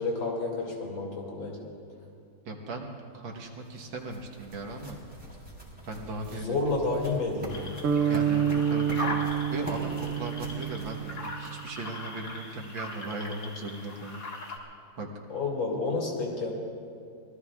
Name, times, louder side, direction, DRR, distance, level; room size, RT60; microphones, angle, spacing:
voice 1, 0.0-1.6 6.3-7.7 15.3-16.5, left 3 dB, 80° left, -2 dB, 3.3 m, -30 dB
voice 2, 2.5-5.0 5.8-6.6 8.1-14.2 15.0-15.1, right 2 dB, 90° right, 1 dB, 2.1 m, -38 dB
sound 1, 3.3-11.8, equal, 5° right, 3.4 m, -44 dB
sound 2, 7.5-14.6, left 2 dB, 40° left, 2.0 m, -40 dB
sound 3, 7.8-11.8, right 8 dB, 60° right, 0.8 m, -28 dB
28.0 x 20.5 x 2.4 m, 2.4 s
omnidirectional pair, 2.1 m